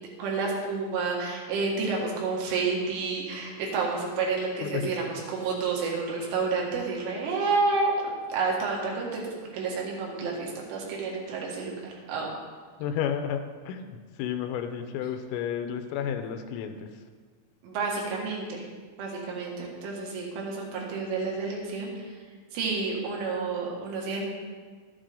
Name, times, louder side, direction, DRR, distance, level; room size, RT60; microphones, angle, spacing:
voice 1, 0.2-8.0 8.3-12.3 17.6-18.6 19.0-22.1 22.5-24.3, right 4 dB, 75° right, -2 dB, 4.1 m, -30 dB
voice 2, 4.6-4.9 12.8-17.0, left 8 dB, 85° left, 7 dB, 3.2 m, -32 dB
12.5 x 8.9 x 3.7 m, 1.5 s
omnidirectional pair, 5.8 m